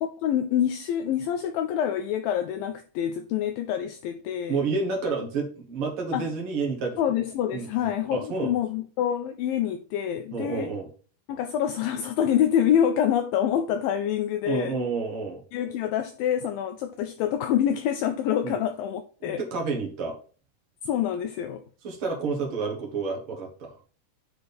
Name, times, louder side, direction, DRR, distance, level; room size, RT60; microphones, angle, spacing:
voice 1, 0.0-4.6 6.1-6.3 7.0-10.7 11.3-14.8 15.5-19.4 20.8-21.6, left 9 dB, 90° left, 2.0 m, -26 dB
voice 2, 4.5-7.0 7.5-8.5 10.3-10.9 14.4-15.4 18.4-18.5 19.2-20.2 21.8-23.8, right 4 dB, 90° right, 1.2 m, -30 dB
10.0 x 3.5 x 4.1 m
omnidirectional pair, 4.6 m